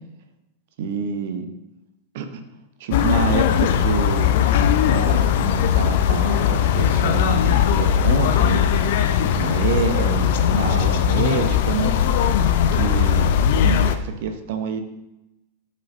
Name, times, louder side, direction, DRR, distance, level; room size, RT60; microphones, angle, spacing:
voice 1, 0.8-1.5 2.1-2.4 2.8-4.3 4.8-8.8 9.2-12.0 12.7-14.8, right 5 dB, 55° right, 7 dB, 0.8 m, -27 dB
sound 1, 2.9-14.0, left 9 dB, 55° left, 0.5 m, -19 dB
12.0 x 5.3 x 2.6 m, 0.94 s
figure-of-eight pair, 90°, 0 cm